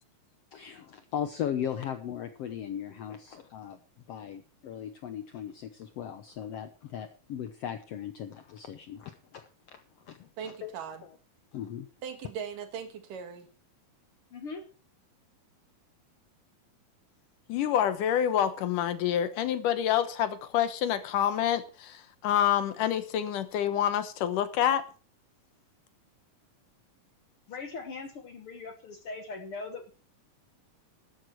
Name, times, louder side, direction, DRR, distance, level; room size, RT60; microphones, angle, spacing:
voice 1, 0.5-3.8 4.1-10.7 11.0-11.1 11.5-11.9, left 9 dB, 90° left, 8 dB, 1.4 m, -38 dB
voice 2, 10.4-11.0 12.0-13.5, right 7 dB, 70° right, 7 dB, 3.2 m, -39 dB
voice 3, 14.3-14.7 27.5-29.9, left 4 dB, 60° left, 6 dB, 1.6 m, -40 dB
voice 4, 17.5-24.8, left 10 dB, 75° left, 11 dB, 2.5 m, -27 dB
13.0 x 11.0 x 4.5 m, 0.35 s
omnidirectional pair, 4.0 m